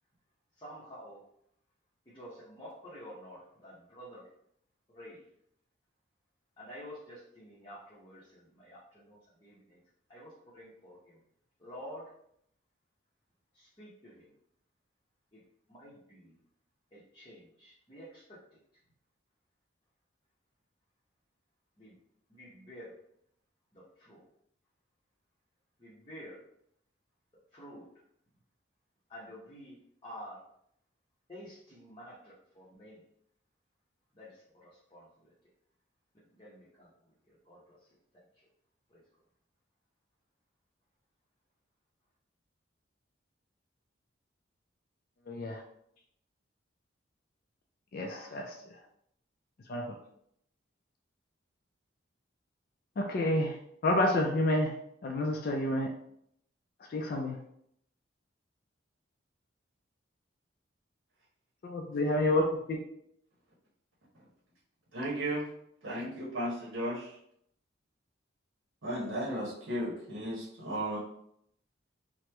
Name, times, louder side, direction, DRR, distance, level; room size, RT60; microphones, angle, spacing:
voice 1, 0.6-1.2 2.1-4.3 4.9-5.2 6.6-9.8 10.1-11.2 11.6-12.1 13.5-14.3 15.3-15.4 15.7-16.3 16.9-18.6 21.8-21.9 22.3-23.0 23.7-24.2 25.8-26.4 27.5-27.9 29.1-30.4 31.3-33.0 34.1-35.3 36.3-37.8 38.9-39.0, equal, 25° left, -8 dB, 0.7 m, -50 dB
voice 2, 45.3-45.6 47.9-48.8 49.7-50.0 53.0-53.6 53.8-54.7 55.0-55.9 56.9-57.4 61.6-62.8, left 1 dB, 50° left, 2 dB, 0.3 m, -29 dB
voice 3, 64.9-65.5 65.8-67.1 68.8-71.0, right 1 dB, 75° right, -6 dB, 0.8 m, -35 dB
2.9 x 2.0 x 3.3 m, 0.71 s
head